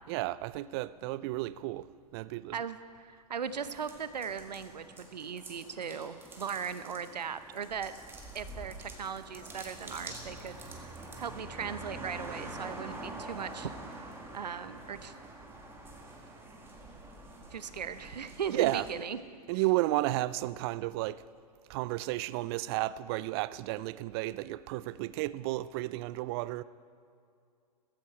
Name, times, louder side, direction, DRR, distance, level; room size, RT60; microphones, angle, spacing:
voice 1, 0.1-2.7 18.5-19.1 19.5-21.2 21.7-26.6, right 17 dB, 40° right, 0.4 m, -33 dB
voice 2, 2.5-7.9 8.3-14.1 14.3-15.1 17.5-19.2, right 7 dB, 80° right, 0.8 m, -38 dB
sound 1, 3.5-18.9, right 2 dB, 10° right, 2.0 m, -46 dB
15.0 x 14.5 x 4.5 m
hypercardioid pair, 115°, 21 cm